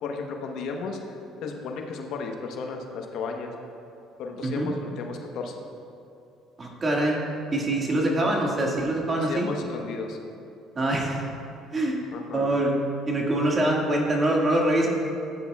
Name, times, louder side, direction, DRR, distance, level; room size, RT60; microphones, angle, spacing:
voice 1, 0.0-3.5 4.2-5.6 9.1-10.2 12.1-12.5, left 4 dB, 70° left, 3 dB, 1.0 m, -34 dB
voice 2, 6.6-7.2 7.5-9.5 10.8-11.3 11.7-12.0 12.3-12.7 13.1-14.9, right 1 dB, 30° right, -1 dB, 1.9 m, -24 dB
15.0 x 9.4 x 2.4 m, 2.6 s
supercardioid pair, 95°, 0 cm